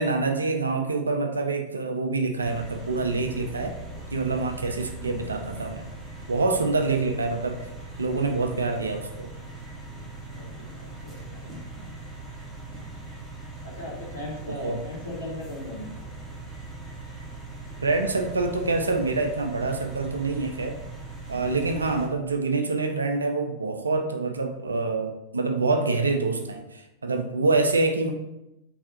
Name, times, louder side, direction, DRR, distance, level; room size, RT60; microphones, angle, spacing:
voice 1, 0.0-3.7 4.1-5.9 6.3-7.6 8.0-9.3 14.6-14.8 17.8-20.8 21.3-28.1, right 3 dB, 75° right, 5 dB, 0.3 m, -26 dB
sound 1, 2.4-22.1, right 2 dB, 5° right, 0.9 m, -40 dB
voice 2, 6.3-6.8 10.3-11.5 13.6-16.1 21.2-21.5, left 1 dB, 70° left, -4 dB, 1.0 m, -39 dB
3.3 x 2.4 x 2.6 m, 0.90 s
figure-of-eight pair, 90°, 0 cm